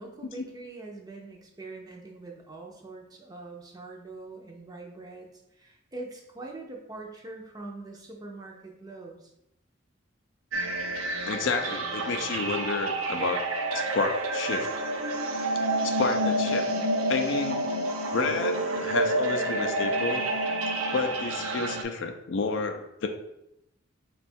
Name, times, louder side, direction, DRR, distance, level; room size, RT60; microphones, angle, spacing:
voice 1, 0.0-9.3, right 2 dB, 20° right, 0 dB, 0.5 m, -43 dB
sound 1, 10.5-21.8, right 1 dB, 75° right, 0.5 m, -29 dB
voice 2, 11.3-13.5 13.7-14.7 15.8-16.7 17.1-17.6 18.1-20.2 20.9-23.1, left 4 dB, 60° left, 6 dB, 0.4 m, -30 dB
3.7 x 2.3 x 4.2 m, 0.81 s
head